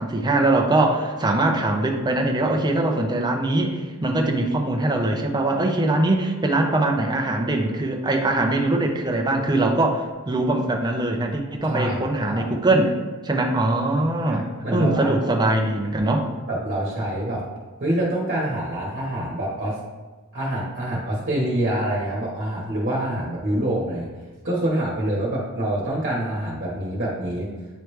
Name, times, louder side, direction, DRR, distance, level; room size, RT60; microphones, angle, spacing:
voice 1, 0.0-12.9 13.2-14.4 14.7-16.3, right 2 dB, 20° right, 1 dB, 0.7 m, -22 dB
voice 2, 11.7-12.5 14.2-15.1 16.5-17.4 17.8-19.8 20.3-24.1 24.4-27.5, right 1 dB, 45° right, -4 dB, 1.3 m, -26 dB
9.1 x 3.2 x 3.2 m, 1.3 s
head